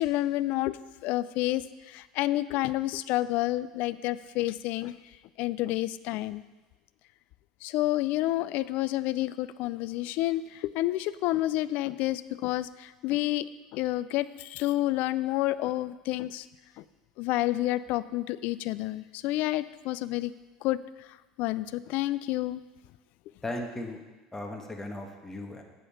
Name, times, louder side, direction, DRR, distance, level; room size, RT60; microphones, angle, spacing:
voice 1, 0.0-4.9 5.4-6.4 7.6-13.5 13.7-16.5 16.8-16.9 17.2-20.3 20.6-21.1 21.4-22.6, left 16 dB, 55° left, 16 dB, 0.4 m, -29 dB
voice 2, 23.4-24.0 24.3-25.6, left 1 dB, 15° left, 2 dB, 1.5 m, -36 dB
8.4 x 6.8 x 5.6 m, 1.2 s
hypercardioid pair, 75°, 3 cm